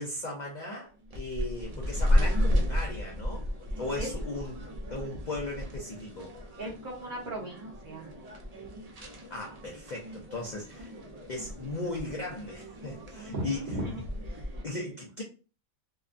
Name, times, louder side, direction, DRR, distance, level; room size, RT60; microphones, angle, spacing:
voice 1, 0.0-3.5 3.8-4.6 4.9-6.3 9.0-10.9 11.3-13.7 14.6-15.2, left 2 dB, 60° left, 0.5 m, -37 dB
sound 1, 1.0-14.6, left 1 dB, 80° right, 0.3 m, -33 dB
voice 2, 6.6-8.1 13.1-14.5, right 1 dB, 45° right, 0.8 m, -37 dB
2.8 x 2.2 x 2.5 m
omnidirectional pair, 1.4 m